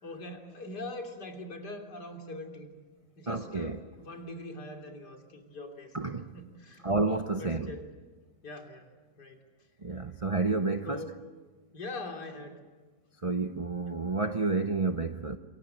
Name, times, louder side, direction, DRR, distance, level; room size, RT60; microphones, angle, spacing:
voice 1, 0.0-2.7 3.2-6.0 6.3-6.9 7.4-7.9 8.4-8.9 9.2-9.4 10.8-11.1 11.7-12.6, left 2 dB, 65° left, 3.7 m, -42 dB
voice 2, 3.3-3.8 5.9-6.3 6.8-7.7 9.8-11.1 13.2-15.4, right 3 dB, 50° right, 0.4 m, -30 dB
27.5 x 23.5 x 7.8 m
omnidirectional pair, 1.9 m